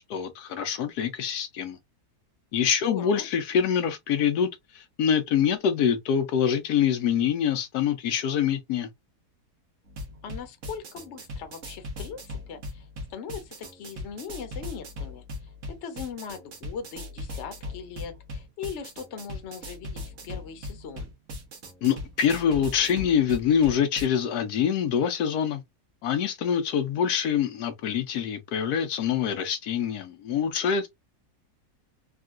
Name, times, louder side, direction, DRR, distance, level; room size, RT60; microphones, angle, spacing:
voice 1, 0.1-1.8 2.5-4.5 4.7-8.9 21.8-25.6 26.0-30.9, left 8 dB, 80° left, 1.1 m, -25 dB
voice 2, 2.8-3.2 10.2-15.5 15.8-21.1, left 7 dB, 55° left, 1.0 m, -40 dB
sound 1, 9.9-24.1, left 1 dB, 55° right, 1.2 m, -39 dB
3.6 x 2.4 x 2.4 m
omnidirectional pair, 1.7 m